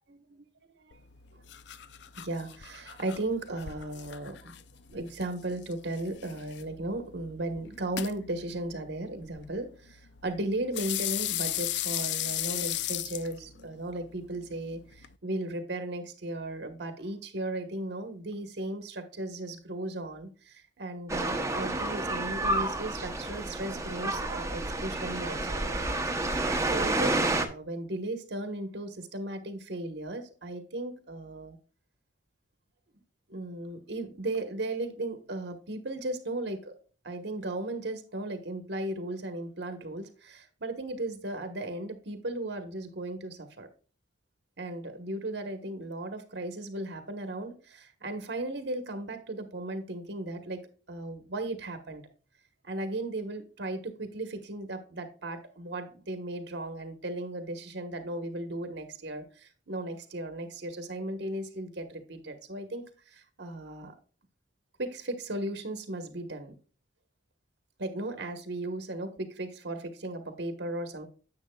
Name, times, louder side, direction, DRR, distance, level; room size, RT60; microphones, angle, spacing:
voice 1, 0.1-1.0 2.2-4.6 4.9-31.6 33.3-36.7 37.0-43.7 44.6-52.0 52.6-63.9 64.8-66.5 67.8-71.1, right 1 dB, 70° right, 1.2 m, -36 dB
sound 1, 0.9-15.1, left 13 dB, 65° left, 0.4 m, -38 dB
sound 2, 21.1-27.5, right 2 dB, 15° right, 0.8 m, -30 dB
9.9 x 7.4 x 2.3 m
head